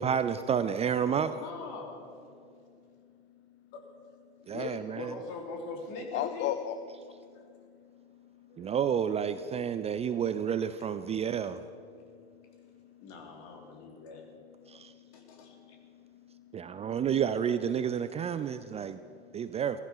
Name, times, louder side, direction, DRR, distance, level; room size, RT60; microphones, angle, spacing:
voice 1, 0.0-1.4 4.5-5.1 8.6-11.6 14.7-14.9 16.5-19.0 19.3-19.8, right 8 dB, 20° right, 12 dB, 0.4 m, -30 dB
voice 2, 1.3-2.0 3.7-3.8 4.9-6.5 8.5-8.7 13.0-14.2 15.1-15.5, left 3 dB, 50° left, 2 dB, 3.3 m, -42 dB
voice 3, 4.5-5.0 6.1-8.7 11.1-11.2 11.9-17.0 18.4-19.6, left 11 dB, 35° left, 10 dB, 0.7 m, -42 dB
17.0 x 15.0 x 5.6 m, 2.5 s
figure-of-eight pair, 80°, 32 cm